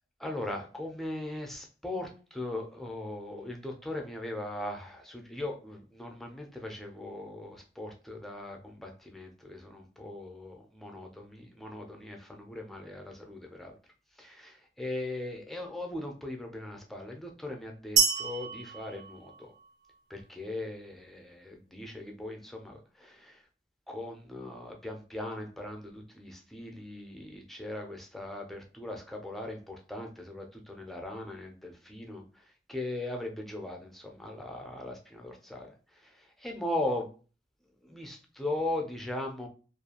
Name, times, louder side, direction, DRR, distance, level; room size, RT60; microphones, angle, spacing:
voice 1, 0.2-13.8 14.2-19.5 20.1-23.4 23.9-37.1 37.8-39.5, left 1 dB, ahead, 2 dB, 0.4 m, -39 dB
sound 1, 18.0-19.9, right 6 dB, 85° right, 0.5 m, -29 dB
2.4 x 2.3 x 2.8 m, 0.37 s
head